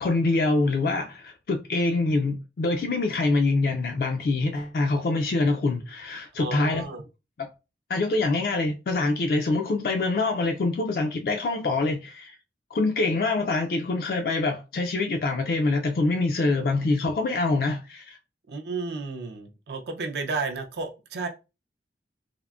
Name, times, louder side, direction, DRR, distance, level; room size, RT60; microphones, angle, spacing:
voice 1, 0.0-6.8 7.4-7.5 7.9-12.4 12.7-18.2, left 3 dB, 55° left, 0.3 m, -25 dB
voice 2, 6.4-7.0 18.5-21.3, right 4 dB, 70° right, 0.4 m, -32 dB
3.5 x 2.0 x 2.3 m
head